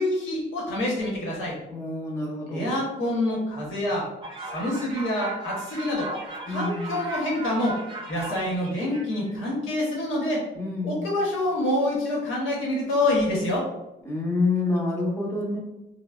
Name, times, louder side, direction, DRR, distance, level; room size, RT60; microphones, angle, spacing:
voice 1, 0.0-1.6 2.5-4.1 4.5-6.1 6.5-7.8 8.1-10.5 10.8-13.7, left 1 dB, 85° left, -3 dB, 1.0 m, -26 dB
voice 2, 1.7-2.7 6.5-6.9 10.5-11.0 14.0-15.6, left 3 dB, 15° left, -3 dB, 0.8 m, -27 dB
sound 1, 4.2-9.3, right 2 dB, 25° right, 0.6 m, -37 dB
3.2 x 2.1 x 2.3 m, 0.94 s
cardioid pair, 90°, 20 cm